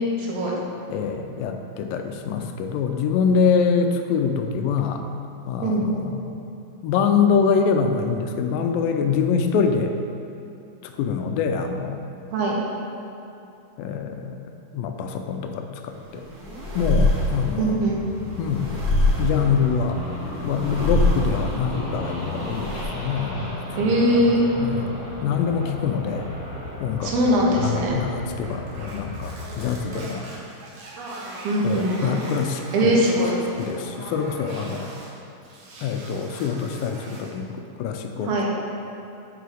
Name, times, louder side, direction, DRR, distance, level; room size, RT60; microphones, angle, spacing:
voice 1, 0.2-0.5 5.6-5.9 12.3-12.6 17.6-18.0 23.8-24.5 27.0-28.0 31.4-32.2 32.7-33.3 38.2-38.5, right 1 dB, 80° right, -3 dB, 3.0 m, -21 dB
voice 2, 0.9-5.0 5.5-6.3 6.8-9.9 10.8-12.0 13.8-16.2 16.8-17.8 18.4-18.7 19.2-20.0 20.4-23.6 23.8-24.2 24.6-24.9 25.2-26.3 26.8-27.1 27.6-30.3 31.6-33.0 33.6-34.9 35.8-37.5 37.8-38.3, left 6 dB, 85° left, 6 dB, 2.2 m, -25 dB
sound 1, 15.9-22.8, left 1 dB, 45° right, 1.5 m, -25 dB
sound 2, 17.7-29.8, left 1 dB, 35° left, 0.9 m, -35 dB
sound 3, 28.4-35.1 35.4-37.4, right 1 dB, 65° right, 2.3 m, -40 dB
6.8 x 6.0 x 6.2 m, 2.8 s
omnidirectional pair, 4.1 m